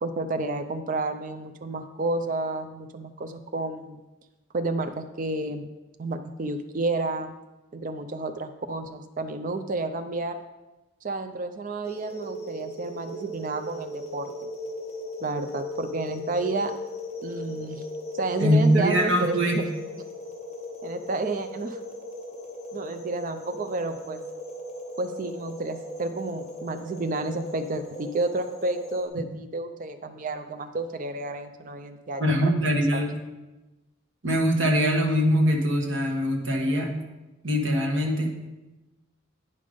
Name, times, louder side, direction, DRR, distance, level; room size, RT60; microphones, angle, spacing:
voice 1, 0.0-4.0 4.5-5.7 6.0-7.3 7.7-10.4 11.0-14.3 15.2-16.7 17.2-17.8 18.1-19.7 20.8-21.8 22.7-24.2 25.0-33.0, right 2 dB, 40° right, 7 dB, 0.4 m, -31 dB
sound 1, 11.8-29.1, left 1 dB, 30° left, 1.2 m, -38 dB
voice 2, 18.4-19.6 32.2-33.2 34.2-36.9 37.4-38.3, equal, 65° right, 1 dB, 1.4 m, -22 dB
9.6 x 5.3 x 5.1 m, 1.1 s
head